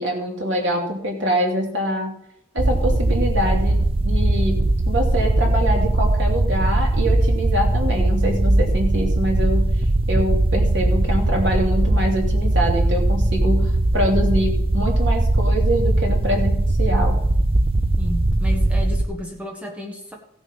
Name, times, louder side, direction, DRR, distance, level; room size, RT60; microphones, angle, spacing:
voice 1, 0.0-2.1 2.5-4.6 4.9-9.7 10.1-17.2, equal, 80° right, 0 dB, 3.0 m, -24 dB
sound 1, 2.6-19.0, right 1 dB, 30° right, 0.5 m, -19 dB
voice 2, 18.0-20.1, equal, 5° right, 0 dB, 1.3 m, -33 dB
15.5 x 6.5 x 5.5 m, 0.72 s
head